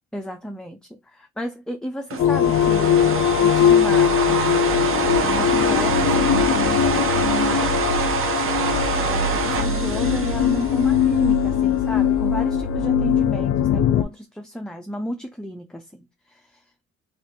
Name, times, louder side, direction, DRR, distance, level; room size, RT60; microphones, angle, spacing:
voice 1, 0.1-4.7 4.9-7.8 8.4-16.7, equal, 5° left, 0.4 m, -33 dB
sound 1, 2.1-11.3, right 6 dB, 45° right, 0.7 m, -26 dB
sound 2, 2.2-14.0, left 8 dB, 60° left, 0.5 m, -20 dB
2.6 x 2.5 x 3.4 m
cardioid pair, 90°, 30 cm